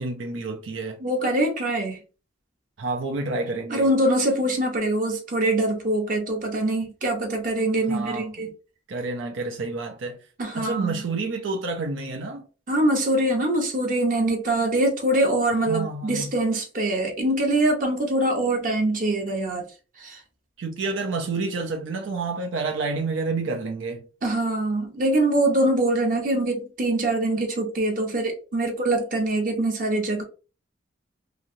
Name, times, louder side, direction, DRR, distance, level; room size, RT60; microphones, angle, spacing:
voice 1, 0.0-1.0 2.8-3.9 7.9-8.3 8.9-10.2 10.6-12.5 15.7-16.3 20.6-24.0, right 3 dB, 80° right, 0.5 m, -29 dB
voice 2, 1.0-2.0 3.7-8.5 10.4-11.0 12.7-19.7 20.0-20.2 24.2-30.2, right 1 dB, 45° right, 0.8 m, -23 dB
3.1 x 2.7 x 2.5 m
head